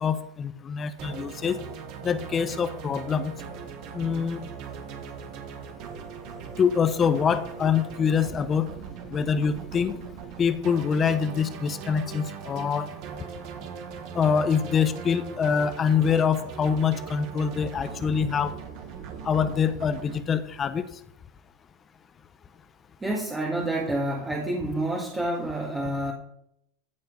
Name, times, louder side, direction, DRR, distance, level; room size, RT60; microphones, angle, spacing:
voice 1, 0.0-1.6 2.0-3.3 3.9-4.4 6.6-8.7 9.1-10.0 10.4-12.9 14.1-18.5 19.2-20.8, left 6 dB, 25° left, 11 dB, 1.0 m, -25 dB
sound 1, 1.0-20.2, right 6 dB, 50° right, 2.2 m, -40 dB
voice 2, 23.0-26.1, right 1 dB, 10° right, 0 dB, 2.1 m, -28 dB
15.0 x 7.5 x 5.3 m, 0.75 s
supercardioid pair, 130°, 0 cm